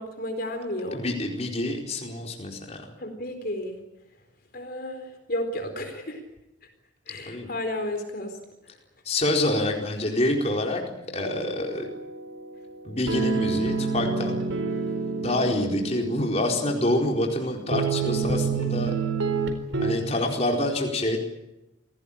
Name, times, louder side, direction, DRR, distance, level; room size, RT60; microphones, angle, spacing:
voice 1, 0.0-1.0 3.0-3.8 4.5-6.2 7.1-8.4, left 1 dB, 50° left, 6 dB, 4.1 m, -32 dB
voice 2, 0.9-2.9 7.2-7.5 9.0-11.9 12.8-14.4 15.2-19.0 19.8-21.2, left 1 dB, 35° left, 1 dB, 4.5 m, -27 dB
sound 1, 11.2-19.9, right 4 dB, 80° right, 4.3 m, -29 dB
28.0 x 19.0 x 8.8 m, 0.91 s
head